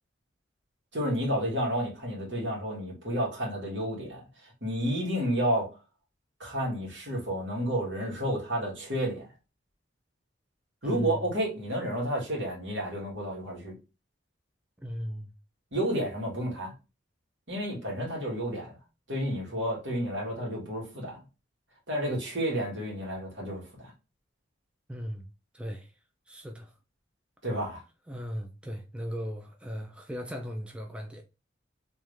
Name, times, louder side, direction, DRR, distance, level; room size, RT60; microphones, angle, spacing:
voice 1, 0.9-5.7 6.4-9.3 10.8-13.7 15.7-16.7 17.5-18.7 19.1-21.2 21.9-23.9 27.4-27.8, equal, 70° right, 2.1 m, -31 dB
voice 2, 10.8-11.3 14.8-15.3 24.9-25.3 25.5-25.9 26.3-26.7 28.1-31.2, equal, 5° right, 0.4 m, -37 dB
3.6 x 3.1 x 3.2 m
head